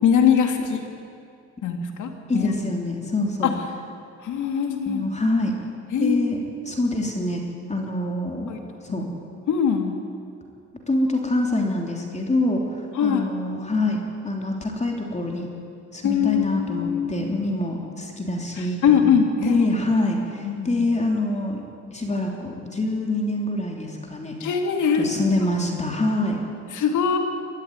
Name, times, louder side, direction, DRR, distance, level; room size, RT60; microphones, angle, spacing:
voice 1, 0.0-0.8 1.6-2.5 3.4-3.6 4.2-5.0 5.9-6.2 8.5-8.6 8.9-9.0 9.5-9.9 13.0-13.2 16.0-17.1 18.6-19.7 20.4-20.7 24.4-25.1 26.7-27.2, left 7 dB, 75° left, 4 dB, 2.7 m, -22 dB
voice 2, 2.3-3.5 4.8-5.5 6.0-7.4 7.7-8.5 8.8-9.1 10.9-14.0 14.2-15.5 15.9-19.1 19.4-21.6 21.9-24.3 25.0-26.4, left 2 dB, 20° left, 1 dB, 3.3 m, -25 dB
22.0 x 13.0 x 9.7 m, 2.4 s
cardioid pair, 90°, 30 cm